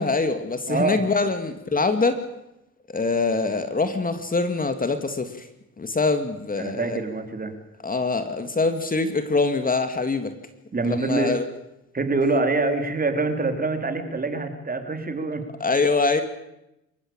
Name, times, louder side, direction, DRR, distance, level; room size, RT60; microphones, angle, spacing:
voice 1, 0.0-2.2 2.9-5.5 5.8-7.0 7.8-10.3 10.8-11.4 15.6-16.2, left 3 dB, 30° left, 9 dB, 2.3 m, -24 dB
voice 2, 0.7-1.0 6.6-7.5 10.7-11.4 11.9-15.4, right 3 dB, 30° right, 6 dB, 3.9 m, -25 dB
27.0 x 15.0 x 8.9 m, 0.90 s
cardioid pair, 90°, 30 cm